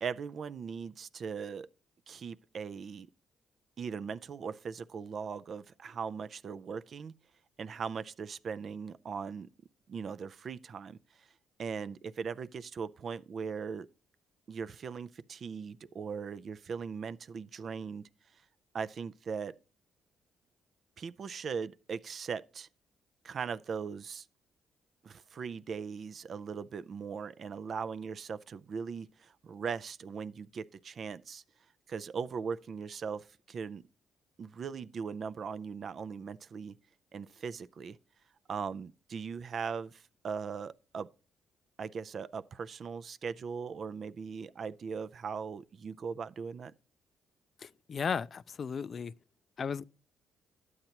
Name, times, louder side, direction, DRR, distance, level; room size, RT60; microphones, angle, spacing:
voice 1, 0.0-1.7 2.1-3.1 3.8-7.1 7.6-9.5 9.9-11.3 11.6-13.9 14.5-18.1 18.7-19.6 21.0-22.7 23.2-24.3 25.0-31.4 31.9-33.8 34.4-36.8 37.1-38.0 38.5-41.1 41.8-46.7, right 6 dB, 50° right, 0.4 m, -39 dB
voice 2, 47.9-49.1 49.6-49.8, left 6 dB, 45° left, 0.3 m, -34 dB
12.0 x 7.9 x 2.9 m
cardioid pair, 90°, 0 cm